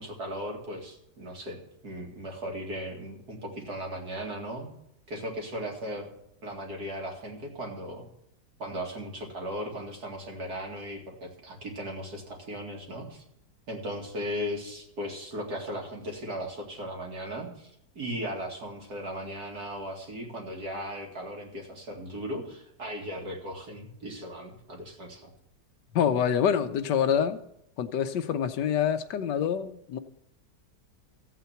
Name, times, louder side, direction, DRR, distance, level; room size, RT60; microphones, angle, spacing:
voice 1, 0.0-4.7 5.1-6.1 6.4-8.1 8.6-13.2 13.7-17.7 17.9-25.3, equal, 65° right, 3.0 m, -37 dB
voice 2, 25.9-27.4 27.8-30.0, left 8 dB, 80° left, 1.4 m, -26 dB
14.5 x 8.3 x 5.9 m
omnidirectional pair, 1.9 m